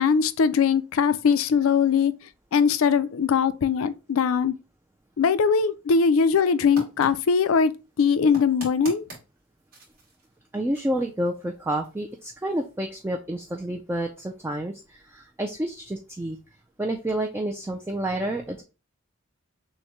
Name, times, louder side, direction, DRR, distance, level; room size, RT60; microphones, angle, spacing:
voice 1, 0.0-2.1 2.5-4.5 5.2-7.7 8.0-9.0, left 6 dB, 70° left, 0.4 m, -21 dB
sound 1, 6.7-12.9, right 1 dB, 45° right, 2.3 m, -46 dB
voice 2, 10.5-16.4 16.8-18.6, right 1 dB, 10° right, 0.3 m, -29 dB
6.3 x 2.1 x 3.0 m
head